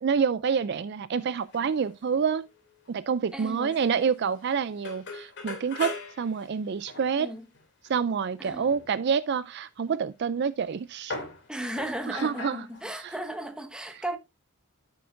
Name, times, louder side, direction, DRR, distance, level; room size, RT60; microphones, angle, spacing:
voice 1, 0.0-2.5 2.9-7.3 7.9-11.2 12.1-12.7 13.0-13.1, right 6 dB, 50° right, 0.3 m, -27 dB
sound 1, 1.5-2.2 2.4-2.9 3.3-3.4 3.7-3.8 4.5-4.6 4.8-7.9 8.4-8.9 10.2-10.3 11.0-13.1, left 3 dB, 50° left, 2.6 m, -40 dB
voice 2, 3.3-4.3 7.1-7.5 8.4-8.7 11.5-14.2, right 1 dB, 5° right, 1.0 m, -36 dB
12.0 x 6.5 x 2.5 m
head